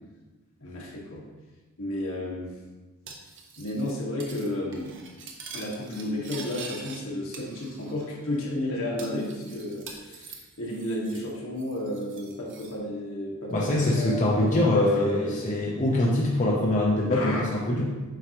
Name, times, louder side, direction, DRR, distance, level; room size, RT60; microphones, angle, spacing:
voice 1, 0.6-1.3 1.8-2.5 3.6-5.0 5.5-15.6 17.1-17.4, left 1 dB, 65° left, -3 dB, 1.5 m, -32 dB
Cutlery silverware, 3.1-3.9 4.2-4.5 4.7-7.0 7.3-8.0 8.3-8.4 9.0-11.3 11.6-12.7, right 4 dB, 60° right, 0.9 m, -44 dB
voice 2, 13.5-17.8, left 1 dB, 35° left, -4 dB, 0.8 m, -24 dB
7.9 x 4.8 x 3.0 m, 1.2 s
head